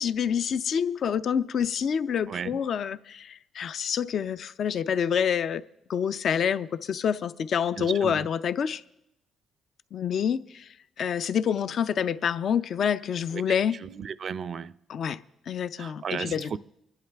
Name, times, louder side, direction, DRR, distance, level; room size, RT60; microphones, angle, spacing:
voice 1, 0.0-5.6 5.9-8.8 9.9-10.6 11.0-13.8 14.9-15.2 15.5-16.6, left 8 dB, 60° left, 0.5 m, -27 dB
voice 2, 2.3-2.6 7.8-8.3 13.3-13.4 13.7-14.8 15.8-16.6, right 6 dB, 55° right, 0.4 m, -35 dB
25.0 x 11.0 x 3.4 m
cardioid pair, 90°, 0 cm